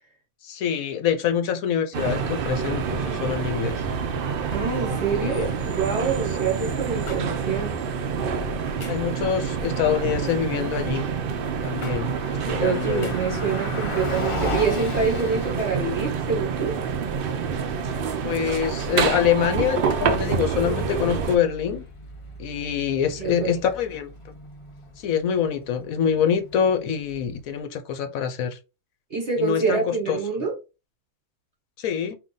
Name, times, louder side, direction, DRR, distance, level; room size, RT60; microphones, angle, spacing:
voice 1, 0.4-3.8 4.9-5.5 8.9-11.1 11.6-12.1 12.5-13.1 18.2-21.8 22.4-24.3 25.0-28.6 29.4-30.2 31.8-32.2, left 8 dB, 70° left, 1.0 m, -25 dB
sound 1, 1.9-21.4, right 6 dB, 80° right, 0.5 m, -27 dB
voice 2, 4.5-7.8 12.6-16.7 23.2-23.5 29.1-30.5, right 5 dB, 50° right, 1.4 m, -26 dB
sound 2, 7.1-7.2 8.8-9.1 10.4-10.7 11.8-12.0 13.0-13.2, left 3 dB, 45° left, 1.1 m, -40 dB
Car passing by, 11.4-27.5, left 2 dB, 30° left, 0.7 m, -38 dB
3.7 x 2.7 x 3.8 m
omnidirectional pair, 1.6 m